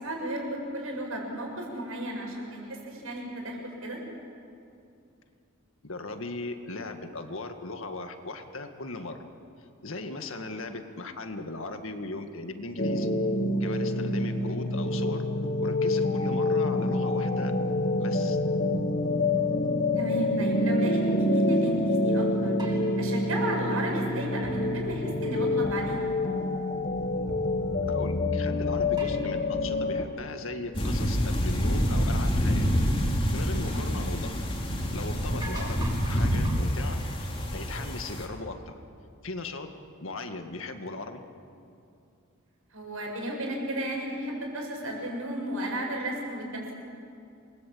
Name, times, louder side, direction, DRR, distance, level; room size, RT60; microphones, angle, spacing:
voice 1, 0.0-2.6 2.9-4.0 10.3-10.4 13.9-14.2 20.0-22.5 23.0-26.0 33.6-33.9 42.7-46.7, right 1 dB, 75° right, 0 dB, 7.5 m, -34 dB
voice 2, 5.8-9.3 9.8-13.1 13.6-15.2 15.6-17.5 18.0-18.4 27.9-32.7 33.1-34.3 34.9-37.0 37.5-38.8 39.2-39.7 40.0-41.2, left 2 dB, 65° left, 6 dB, 2.0 m, -38 dB
sound 1, 12.8-30.1, left 2 dB, 40° left, 1.7 m, -27 dB
sound 2, 22.6-24.1 29.0-30.1 31.2-31.3 35.0-35.1 35.4-36.6, right 2 dB, 20° right, 7.8 m, -44 dB
sound 3, 30.7-38.3, equal, 25° left, 3.3 m, -27 dB
28.5 x 21.5 x 8.7 m, 2.5 s
head